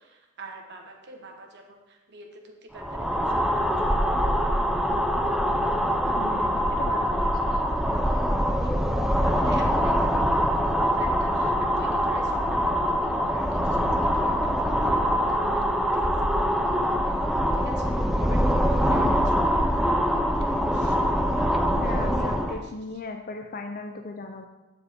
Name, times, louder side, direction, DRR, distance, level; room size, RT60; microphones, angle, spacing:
voice 1, 0.0-4.7 8.6-8.7 9.2-10.3 10.6-17.2 17.5-22.0 22.4-22.7, right 2 dB, 55° right, 2 dB, 1.3 m, -47 dB
sound 1, 2.8-22.6, equal, ahead, 0.5 m, -24 dB
voice 2, 6.1-7.6 18.9-19.3 21.8-24.4, left 3 dB, 45° left, 4 dB, 0.6 m, -37 dB
14.0 x 4.9 x 3.7 m, 1.1 s
head